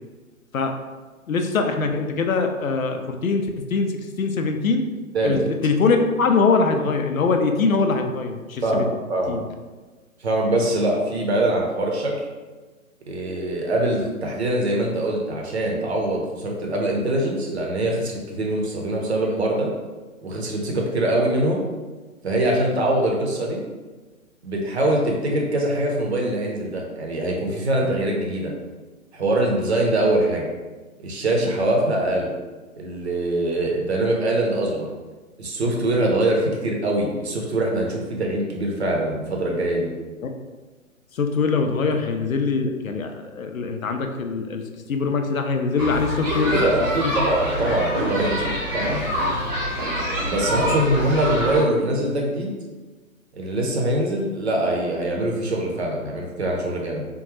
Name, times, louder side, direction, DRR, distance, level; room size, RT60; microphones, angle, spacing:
voice 1, 1.3-4.8 5.2-8.9 9.3-9.4 40.2-40.3 41.1-44.6 44.9-47.1, left 4 dB, 70° left, 5 dB, 0.6 m, -23 dB
voice 2, 9.1-9.4 10.2-12.2 13.1-19.7 20.2-21.6 22.2-23.6 24.4-28.5 29.1-30.5 31.0-32.3 32.8-34.9 35.4-39.9 46.3-49.0 50.2-52.5 53.4-57.0, right 1 dB, 50° right, -1 dB, 0.7 m, -23 dB
sound 1, 45.8-51.6, equal, 15° right, 0.8 m, -26 dB
3.6 x 2.2 x 3.0 m, 1.3 s
figure-of-eight pair, 130°, 42 cm